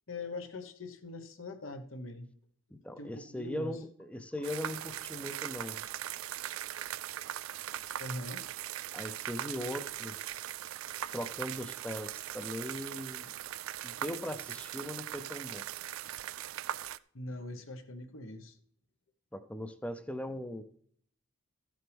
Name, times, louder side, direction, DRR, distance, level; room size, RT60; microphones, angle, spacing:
voice 1, 0.1-2.3 3.0-3.8 8.0-8.5 17.1-18.6, left 2 dB, 75° left, 7 dB, 1.2 m, -42 dB
voice 2, 2.7-5.8 8.9-10.2 11.1-13.3 13.8-15.6 19.3-20.6, left 1 dB, 5° left, 9 dB, 0.6 m, -39 dB
sound 1, 4.4-17.0, right 12 dB, 85° right, 0.4 m, -40 dB
14.5 x 7.8 x 3.5 m, 0.62 s
head